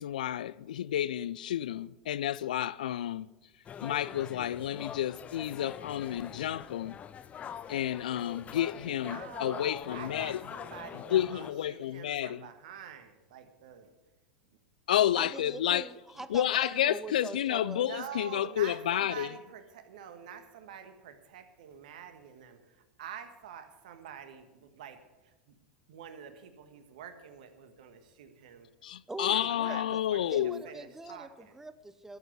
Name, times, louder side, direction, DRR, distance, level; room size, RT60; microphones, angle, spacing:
voice 1, 0.0-3.3 3.8-6.9 7.7-10.4 11.1-12.5 14.9-15.8 16.3-19.3 28.8-30.6, left 11 dB, 75° left, 0.4 m, -30 dB
sound 1, 3.7-11.5, left 8 dB, 30° left, 0.7 m, -44 dB
voice 2, 8.8-13.9 17.8-25.5 25.9-28.7 29.3-30.3 30.6-31.5, right 8 dB, 70° right, 1.5 m, -47 dB
voice 3, 15.1-17.8 29.1-30.0 30.3-32.2, right 2 dB, 10° right, 0.8 m, -43 dB
12.5 x 7.8 x 8.0 m
hypercardioid pair, 90°, 4 cm